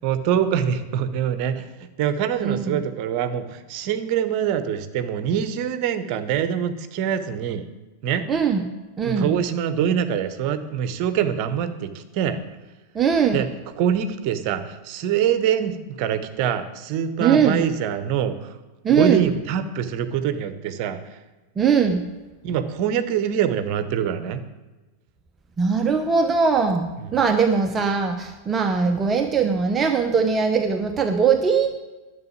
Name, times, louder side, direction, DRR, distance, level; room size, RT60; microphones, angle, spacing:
voice 1, 0.0-1.7 2.0-7.6 8.0-8.3 9.0-12.4 13.3-13.5 13.8-18.6 18.9-21.0 22.4-24.4 27.0-27.2, right 9 dB, 45° right, 11 dB, 1.0 m, -24 dB
voice 2, 2.4-2.8 8.3-8.6 9.0-9.3 13.0-13.4 17.2-17.6 18.8-19.2 21.6-22.0 25.6-31.8, right 6 dB, 20° right, 5 dB, 0.8 m, -20 dB
11.0 x 6.9 x 8.5 m, 1.2 s
figure-of-eight pair, 90°, 0 cm